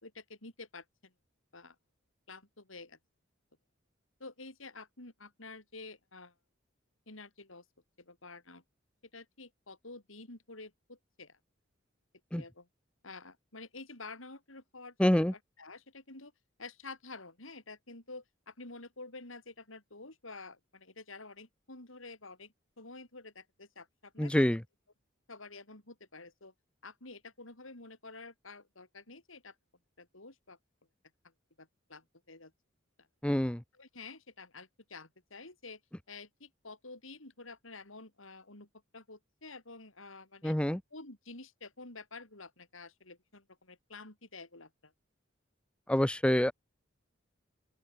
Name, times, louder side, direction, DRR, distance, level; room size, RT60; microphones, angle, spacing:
voice 1, 0.0-1.1 1.5-1.8 2.3-3.0 4.2-6.3 7.1-7.6 8.0-8.6 9.1-11.4 12.4-12.7 13.0-16.3 16.6-24.5 25.3-26.5 26.8-29.6 30.0-30.6 31.6-32.5 33.0-33.1 33.8-35.8 36.1-38.7 38.9-40.6 40.9-44.9, left 3 dB, 85° left, 5.7 m, -49 dB
voice 2, 15.0-15.3 24.2-24.6 33.2-33.6 40.4-40.8 45.9-46.5, equal, 5° left, 0.5 m, -26 dB
open air
head